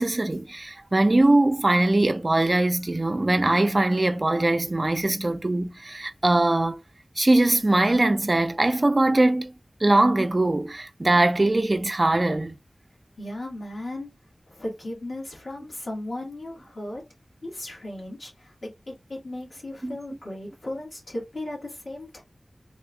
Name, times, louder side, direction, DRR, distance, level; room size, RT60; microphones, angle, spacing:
voice 1, 0.0-6.8 7.2-9.5 9.8-12.6 19.8-20.0, right 2 dB, 45° right, 0.5 m, -21 dB
voice 2, 13.2-14.1 14.5-17.0 17.4-22.2, left 1 dB, 85° left, 1.8 m, -36 dB
3.5 x 2.3 x 3.8 m
wide cardioid pair, 55°, 0 cm